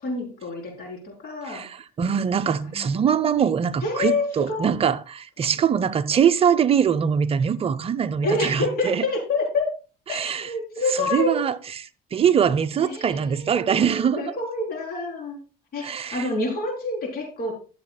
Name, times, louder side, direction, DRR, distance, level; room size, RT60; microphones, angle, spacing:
voice 1, 0.0-1.7 2.6-3.0 3.8-4.7 8.2-9.7 10.1-11.5 12.8-15.4 15.7-17.5, left 2 dB, 60° left, 3.7 m, -28 dB
voice 2, 1.5-9.0 10.1-10.5 11.1-11.6 12.1-14.3 15.8-16.3, right 7 dB, 35° right, 0.6 m, -22 dB
13.0 x 7.2 x 2.2 m
cardioid pair, 110°, 17 cm